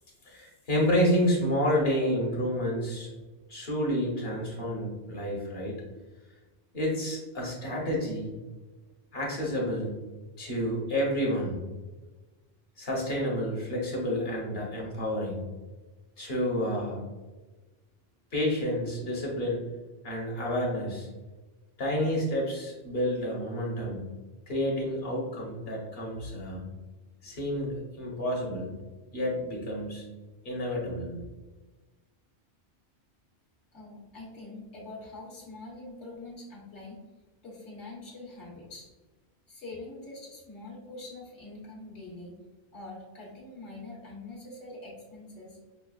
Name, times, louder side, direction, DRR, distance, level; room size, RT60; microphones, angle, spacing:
voice 1, 0.2-3.1 3.5-5.8 6.7-8.3 9.1-9.9 10.4-11.6 12.8-15.4 16.2-17.0 18.3-19.6 20.0-21.1 21.8-24.0 24.5-26.6 27.2-28.7 29.1-30.0 30.4-31.2, equal, 60° left, -2 dB, 1.3 m, -29 dB
voice 2, 33.7-37.0 37.4-38.9 39.5-42.3 42.7-45.6, left 2 dB, 85° left, -4 dB, 1.5 m, -44 dB
5.7 x 2.3 x 2.3 m, 1.2 s
omnidirectional pair, 1.2 m